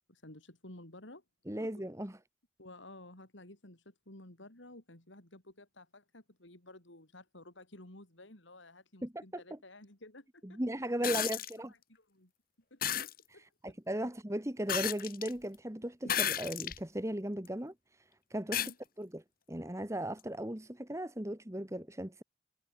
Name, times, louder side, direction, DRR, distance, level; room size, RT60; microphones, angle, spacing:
voice 1, 0.1-1.2 1.6-1.7 2.6-10.6 11.0-11.4 11.7-12.3 12.7-13.8 18.5-18.8 20.9-21.0, left 1 dB, 75° left, 4.4 m, -53 dB
voice 2, 1.5-2.1 9.0-9.6 10.4-11.7 13.3-17.7 18.3-18.6 19.0-19.2 19.5-22.2, right 1 dB, 15° right, 1.5 m, -37 dB
sound 1, 11.0-11.5 12.8-13.1 14.7-15.3 16.1-16.8 17.5-17.6 18.5-18.7 20.2-20.3, left 10 dB, 50° left, 3.1 m, -33 dB
head